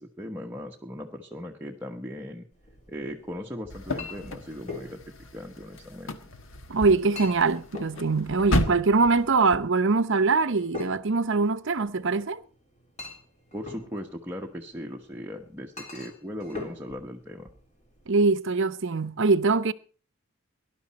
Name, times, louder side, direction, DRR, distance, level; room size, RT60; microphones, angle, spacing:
voice 1, 0.0-2.5 2.9-5.0 5.3-6.2 13.5-17.5, equal, 10° right, 1.1 m, -38 dB
Chink clink, 2.5-18.0, left 4 dB, 35° left, 3.5 m, -45 dB
sound 1, 3.7-9.6, left 1 dB, 65° left, 1.5 m, -33 dB
voice 2, 6.7-12.4 18.1-19.7, right 4 dB, 60° right, 0.8 m, -23 dB
18.5 x 11.5 x 4.2 m
head